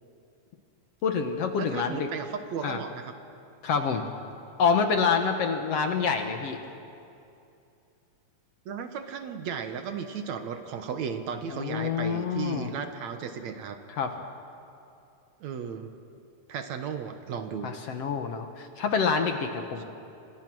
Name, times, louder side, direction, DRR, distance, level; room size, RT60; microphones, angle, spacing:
voice 1, 1.0-2.1 2.6-2.8 3.6-4.0 4.6-6.6 11.5-12.7 13.9-14.1 17.6-19.8, left 6 dB, 60° left, 5 dB, 2.0 m, -27 dB
voice 2, 1.6-3.1 8.7-13.8 15.4-15.9 16.5-17.7, right 7 dB, 65° right, 7 dB, 2.3 m, -35 dB
27.5 x 25.5 x 6.2 m, 2.6 s
omnidirectional pair, 3.7 m